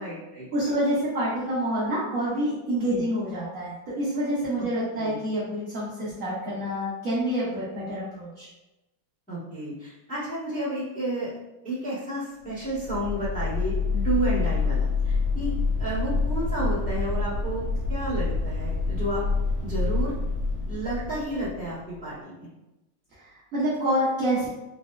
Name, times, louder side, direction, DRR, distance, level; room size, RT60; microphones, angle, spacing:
voice 1, 0.0-0.5 2.9-3.0 4.6-4.7 4.9-5.2 9.3-11.3 11.6-15.5 15.8-19.2 19.6-20.1 20.7-22.5, right 1 dB, 10° left, -11 dB, 0.5 m, -31 dB
voice 2, 0.5-8.5 23.2-24.5, right 1 dB, 80° right, -8 dB, 0.7 m, -27 dB
sound 1, 12.6-21.9, left 3 dB, 65° left, 1.6 m, -27 dB
3.9 x 2.1 x 2.2 m, 1.0 s
omnidirectional pair, 2.2 m